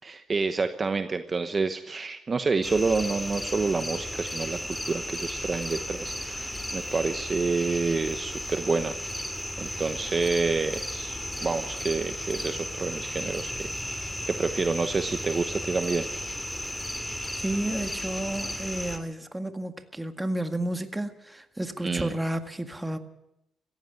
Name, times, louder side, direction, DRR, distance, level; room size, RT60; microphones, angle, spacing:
voice 1, 0.0-8.9 9.6-13.7 14.3-16.1 21.8-22.1, right 4 dB, 35° right, 9 dB, 1.1 m, -28 dB
sound 1, 2.6-19.0, left 1 dB, 5° left, 2.6 m, -34 dB
voice 2, 17.4-23.0, right 1 dB, 10° right, 7 dB, 1.9 m, -31 dB
17.5 x 15.0 x 9.9 m, 0.86 s
cardioid pair, 90°, 0 cm